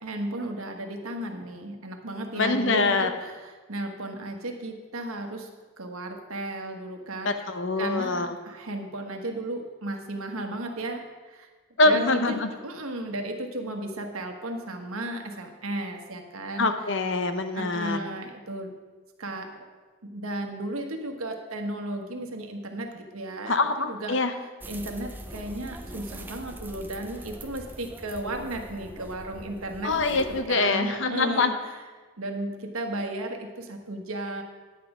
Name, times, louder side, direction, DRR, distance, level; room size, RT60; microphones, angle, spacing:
voice 1, 0.0-5.5 5.8-7.4 7.8-11.5 11.8-12.4 12.6-16.7 17.5-18.7 19.2-19.5 20.0-24.2 24.7-29.9 30.5-31.5 32.2-34.4, right 1 dB, 80° right, 4 dB, 1.3 m, -34 dB
voice 2, 2.3-3.1 7.2-8.4 11.8-12.5 16.6-18.0 23.5-24.3 29.8-31.5, left 3 dB, 60° left, 8 dB, 0.8 m, -24 dB
sound 1, 24.6-30.5, right 1 dB, 10° right, 0.5 m, -42 dB
10.0 x 8.6 x 4.9 m, 1.3 s
head